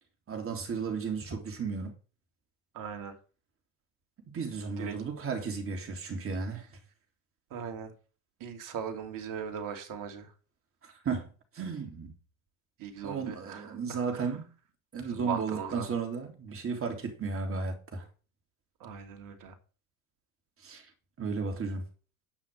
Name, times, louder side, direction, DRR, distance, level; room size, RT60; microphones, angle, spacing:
voice 1, 0.3-1.9 4.3-6.7 10.8-12.2 13.0-14.5 14.9-18.1 20.6-20.8 21.2-21.8, right 5 dB, 30° right, 3.5 m, -34 dB
voice 2, 2.7-3.2 4.8-5.0 7.5-7.9 8.4-10.3 12.8-14.4 15.0-15.9 18.8-19.6, right 7 dB, 45° right, 2.8 m, -39 dB
10.0 x 6.0 x 6.7 m
hypercardioid pair, 95°, 42 cm